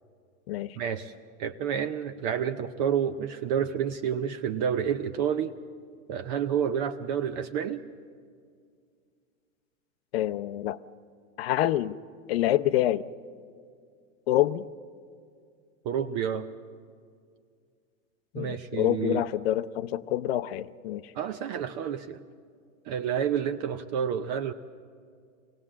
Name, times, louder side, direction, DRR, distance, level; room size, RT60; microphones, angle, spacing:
voice 1, 0.8-1.1 1.4-5.5 6.1-7.8 15.8-16.5 18.4-19.2 21.1-22.2 22.9-24.5, right 8 dB, 35° right, 9 dB, 0.6 m, -29 dB
voice 2, 10.1-10.8 11.4-11.9 12.3-13.0 14.3-14.7 18.3-21.1, left 13 dB, 50° left, 14 dB, 0.7 m, -27 dB
24.0 x 17.5 x 7.4 m, 2.2 s
hypercardioid pair, 140°, 39 cm